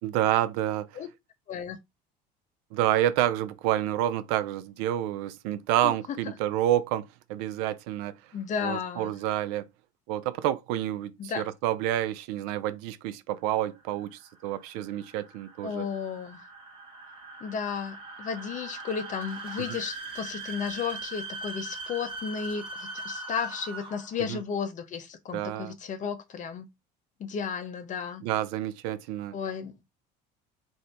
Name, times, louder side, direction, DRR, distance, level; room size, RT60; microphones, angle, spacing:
voice 1, 0.0-1.0 2.7-7.0 7.3-8.1 8.6-9.6 10.1-15.9 19.7-19.8 24.3-24.4 25.3-25.7 28.2-29.4, right 12 dB, 75° right, 0.5 m, -28 dB
voice 2, 8.3-9.1 11.2-11.5 15.6-16.4 17.4-26.7 27.2-28.2 29.3-29.7, left 6 dB, 40° left, 0.8 m, -33 dB
sound 1, 13.8-24.2, right 2 dB, 25° right, 1.2 m, -40 dB
2.7 x 2.6 x 3.3 m
supercardioid pair, 105°, 21 cm